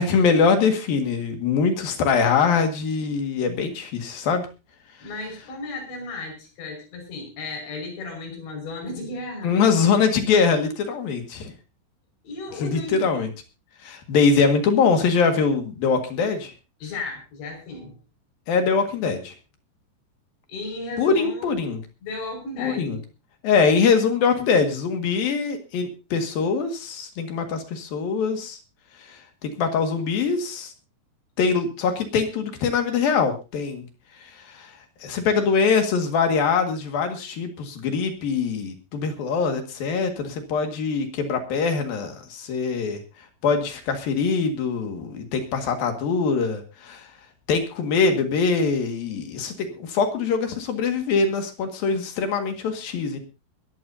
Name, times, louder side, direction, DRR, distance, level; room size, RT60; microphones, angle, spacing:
voice 1, 0.0-4.5 9.4-11.5 12.6-13.3 13.8-16.5 18.5-19.3 21.0-21.8 22.6-23.0 23.4-28.6 29.0-30.7 31.4-33.9 34.2-34.7 35.0-43.0 43.4-47.1 47.5-53.2, left 5 dB, 60° left, 6 dB, 3.5 m, -23 dB
voice 2, 5.0-9.8 12.2-13.2 16.8-18.0 20.5-21.6 22.0-23.0, left 2 dB, 80° left, 3 dB, 7.8 m, -34 dB
21.5 x 14.0 x 2.8 m, 0.30 s
omnidirectional pair, 5.0 m